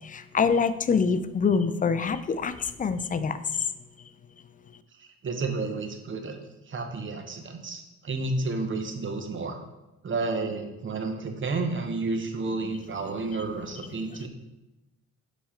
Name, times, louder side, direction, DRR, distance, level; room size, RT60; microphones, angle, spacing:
voice 1, 0.0-3.4, left 5 dB, 30° left, 12 dB, 0.4 m, -25 dB
voice 2, 5.0-6.4 6.7-9.6 10.0-14.3, right 3 dB, 40° right, 5 dB, 0.9 m, -31 dB
6.9 x 4.4 x 4.4 m, 1.0 s
cardioid pair, 90°, 30 cm